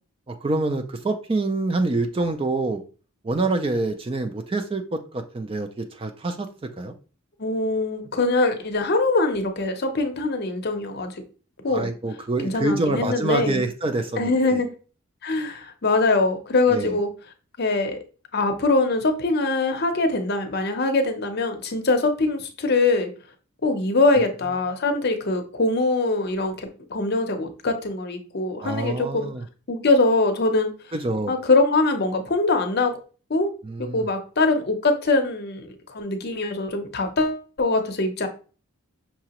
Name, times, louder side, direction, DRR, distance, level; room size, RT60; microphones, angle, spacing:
voice 1, 0.3-2.8 3.2-6.9 11.7-14.6 16.7-17.0 28.6-29.4 30.9-31.3 33.6-34.1, right 2 dB, 25° right, 7 dB, 0.3 m, -26 dB
voice 2, 7.4-11.1 11.6-11.9 12.4-13.6 14.2-14.7 15.2-17.1 17.6-18.0 18.3-23.1 23.6-29.3 29.7-30.7 31.3-32.9 33.3-33.5 33.8-38.3, left 3 dB, 45° left, 5 dB, 0.7 m, -23 dB
5.8 x 2.8 x 2.9 m, 0.37 s
head